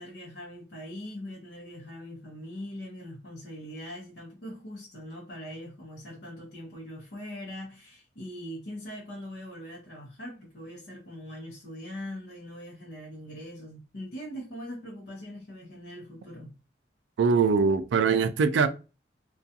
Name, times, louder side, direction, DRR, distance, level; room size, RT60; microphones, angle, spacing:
voice 1, 0.0-16.5, equal, 65° left, 0.8 m, -41 dB
voice 2, 17.2-18.7, right 5 dB, 80° right, 0.3 m, -22 dB
2.3 x 2.2 x 2.7 m
head